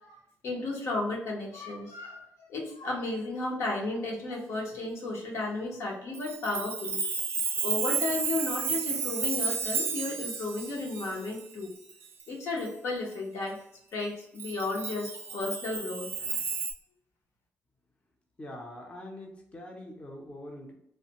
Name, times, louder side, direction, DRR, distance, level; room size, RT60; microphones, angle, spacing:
voice 1, 0.0-7.0 7.6-11.7 12.3-13.6 13.9-16.4, left 2 dB, 70° left, -1 dB, 0.9 m, -34 dB
Chime, 6.1-12.2 12.7-12.8 14.4-16.7, right 5 dB, 45° right, 0.4 m, -32 dB
voice 2, 18.4-20.7, left 1 dB, 25° left, 0 dB, 0.6 m, -43 dB
3.1 x 2.1 x 2.9 m, 0.76 s
cardioid pair, 105°, 5 cm